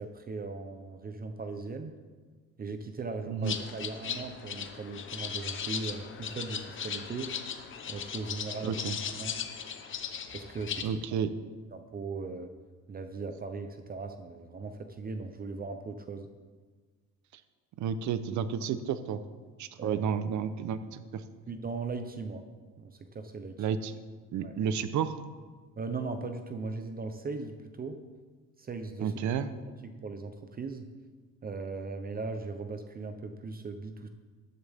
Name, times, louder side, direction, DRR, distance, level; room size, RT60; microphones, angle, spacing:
voice 1, 0.0-2.0 2.6-7.3 7.9-8.8 9.1-9.4 10.3-10.9 11.7-12.5 12.9-16.3 19.8-20.0 21.5-22.4 22.8-23.7 24.4-24.5 25.8-28.0 28.6-29.1 29.8-30.8 31.4-34.1, right 4 dB, 30° right, 7 dB, 0.7 m, -38 dB
sound 1, 3.4-10.8, left 7 dB, 40° left, 0.9 m, -38 dB
voice 2, 8.6-9.0 10.8-11.3 17.3-17.4 17.8-19.2 19.6-21.2 23.6-23.9 24.3-25.1 29.0-29.5, right 7 dB, 65° right, 12 dB, 0.8 m, -31 dB
14.5 x 10.5 x 3.6 m, 1.4 s
cardioid pair, 130°, 32 cm